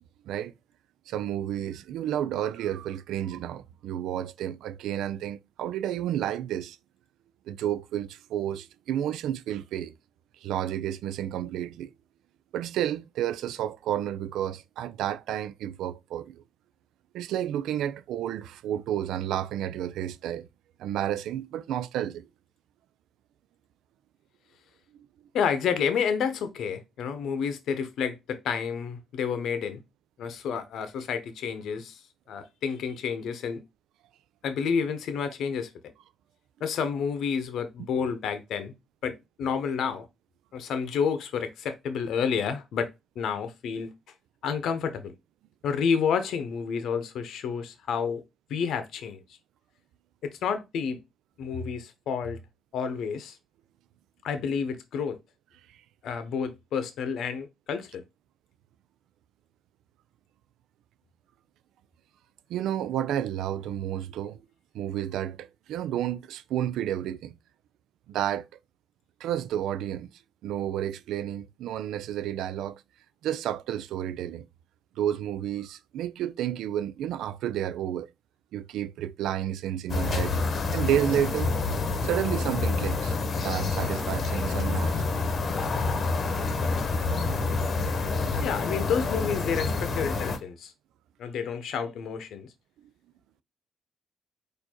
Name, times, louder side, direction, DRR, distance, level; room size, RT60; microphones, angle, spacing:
voice 1, 1.1-6.8 7.5-9.9 10.4-11.9 12.5-16.4 17.1-20.5 20.8-22.3 62.5-64.4 64.7-67.3 68.1-68.4 69.2-70.1 70.4-72.8 73.2-74.5 75.0-78.1 78.5-80.3 80.7-81.5 82.0-83.2 83.4-85.0, right 11 dB, 85° right, 0.4 m, -31 dB
voice 2, 25.3-29.8 30.2-32.0 32.3-33.6 34.4-35.7 36.6-38.7 39.0-40.1 40.5-42.9 43.2-43.9 44.4-45.1 45.6-48.2 48.5-49.2 50.2-51.0 51.4-52.4 52.7-53.4 54.2-55.2 56.0-58.0 88.4-90.7 91.2-92.5, left 6 dB, 75° left, 0.8 m, -30 dB
sound 1, 79.9-90.4, left 3 dB, 45° left, 0.9 m, -28 dB
4.5 x 2.6 x 4.3 m
cardioid pair, 90°, 0 cm